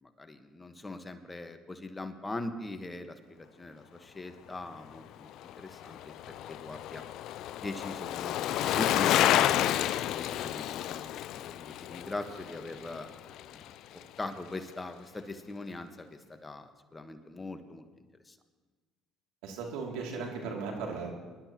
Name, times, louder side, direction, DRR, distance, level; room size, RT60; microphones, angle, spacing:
voice 1, 0.0-5.3 5.6-6.1 6.5-7.0 7.6-13.1 13.5-13.7 14.2-18.4, left 2 dB, 20° left, 8 dB, 1.3 m, -41 dB
Bicycle, 5.3-13.7 14.0-14.1, left 12 dB, 65° left, 0.4 m, -30 dB
voice 2, 19.4-21.1, right 4 dB, 75° right, 0 dB, 2.7 m, -36 dB
23.5 x 12.0 x 3.0 m, 1.4 s
hypercardioid pair, 65°, 0 cm